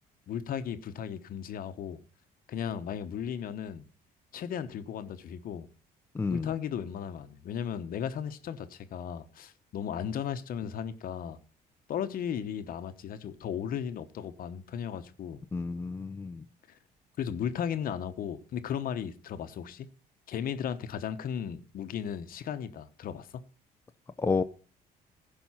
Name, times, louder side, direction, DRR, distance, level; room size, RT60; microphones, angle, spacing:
voice 1, 0.3-2.0 2.5-3.9 4.3-5.7 6.3-11.4 11.9-15.4 16.7-16.8 17.2-19.9 20.3-23.3, left 8 dB, 55° left, 1.0 m, -35 dB
voice 2, 6.1-6.5 15.5-16.4 24.2-24.4, left 4 dB, 15° left, 0.5 m, -30 dB
15.0 x 5.5 x 5.7 m
cardioid pair, 110°, 17 cm